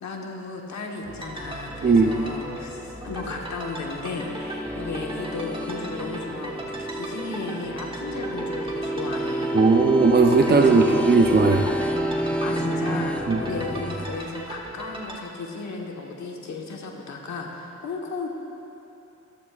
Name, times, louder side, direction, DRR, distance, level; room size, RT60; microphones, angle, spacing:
voice 1, 0.0-9.6 10.5-11.0 12.4-18.3, left 3 dB, 70° left, 1 dB, 1.4 m, -34 dB
sound 1, 1.0-15.2, right 1 dB, 20° right, 1.5 m, -37 dB
voice 2, 1.8-2.1 9.5-11.7 13.3-13.4, right 4 dB, 35° right, 2 dB, 0.7 m, -18 dB
sound 2, 4.1-14.2, right 1 dB, 5° left, 0.8 m, -29 dB
14.5 x 13.5 x 2.5 m, 2.9 s
cardioid pair, 60°, 29 cm